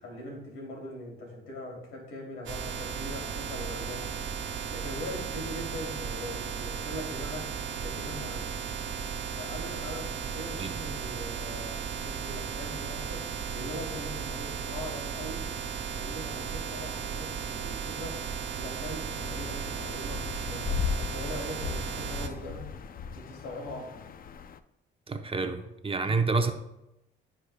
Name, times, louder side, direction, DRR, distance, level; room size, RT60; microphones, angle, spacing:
voice 1, 0.0-4.2 4.7-7.5 7.8-8.5 9.4-13.3 13.5-15.5 15.9-18.2 18.6-22.7 23.1-24.0 26.0-26.2, left 1 dB, 85° left, 2.9 m, -41 dB
sound 1, 2.5-22.3, right 6 dB, 70° right, 1.3 m, -35 dB
sound 2, 19.2-24.6, left 6 dB, 45° left, 0.5 m, -36 dB
voice 2, 25.1-26.5, right 3 dB, 30° right, 0.7 m, -28 dB
14.5 x 5.0 x 2.2 m
cardioid pair, 90°, 20 cm